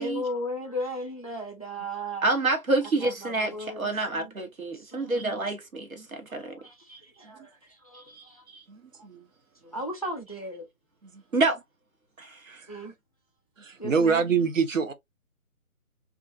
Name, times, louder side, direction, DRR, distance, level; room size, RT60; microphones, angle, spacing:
voice 1, 0.0-2.3 3.0-4.3 4.7-5.2 6.3-6.9 7.2-7.6 7.8-8.4 9.7-10.7 12.7-12.9 13.8-14.3, equal, 25° left, 0.5 m, -36 dB
voice 2, 2.2-6.6 6.9-7.0 7.9-8.2 8.5-8.6 11.3-11.6 12.2-12.6, right 2 dB, 80° right, 1.3 m, -28 dB
voice 3, 8.7-9.2 12.5-12.8 13.6-14.9, right 5 dB, 65° right, 0.7 m, -26 dB
2.4 x 2.4 x 2.4 m
figure-of-eight pair, 150°, 42 cm